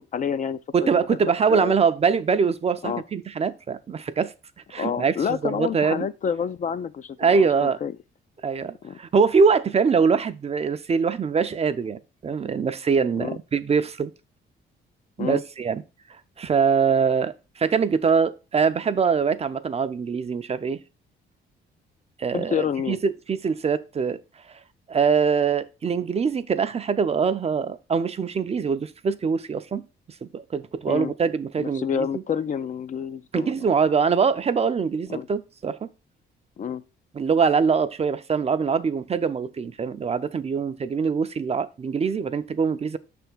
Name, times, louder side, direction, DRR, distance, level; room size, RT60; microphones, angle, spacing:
voice 1, 0.0-1.8 2.8-3.0 4.8-8.0 8.8-9.0 13.2-13.4 15.2-15.4 22.3-23.0 30.9-31.1 31.6-33.7 35.1-35.3 36.6-36.8, left 7 dB, 40° left, 0.4 m, -29 dB
voice 2, 0.7-4.3 4.7-6.1 7.2-7.8 8.4-14.1 15.2-15.8 16.4-20.8 22.2-24.2 24.5-24.6 24.9-29.8 30.2-32.1 33.3-35.9 37.1-43.0, right 5 dB, 30° right, 0.5 m, -23 dB
6.2 x 3.5 x 5.9 m
cardioid pair, 90°, 20 cm